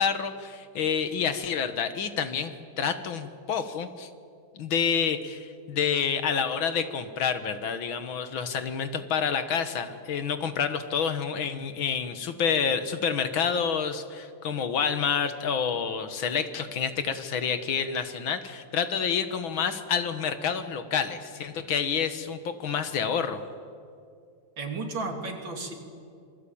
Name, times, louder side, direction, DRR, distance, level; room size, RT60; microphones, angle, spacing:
voice 1, 0.0-4.1 4.5-23.4, left 7 dB, 80° left, 10 dB, 2.2 m, -28 dB
voice 2, 24.6-25.7, right 3 dB, 70° right, 3 dB, 3.7 m, -33 dB
26.0 x 22.0 x 8.7 m, 2.3 s
omnidirectional pair, 2.2 m